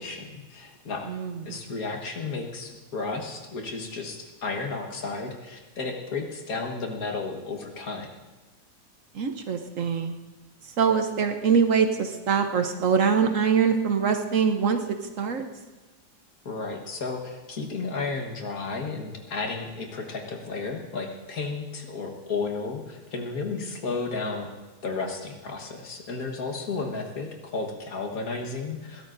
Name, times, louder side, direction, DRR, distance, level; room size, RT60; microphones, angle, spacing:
voice 1, 0.0-1.1 1.5-8.1 16.5-24.6 24.8-29.1, left 4 dB, 60° left, 1 dB, 1.9 m, -33 dB
voice 2, 1.1-1.6 9.1-10.1 10.8-14.8 15.2-15.4, right 6 dB, 60° right, 6 dB, 1.0 m, -23 dB
21.5 x 16.5 x 2.6 m, 1.2 s
omnidirectional pair, 1.7 m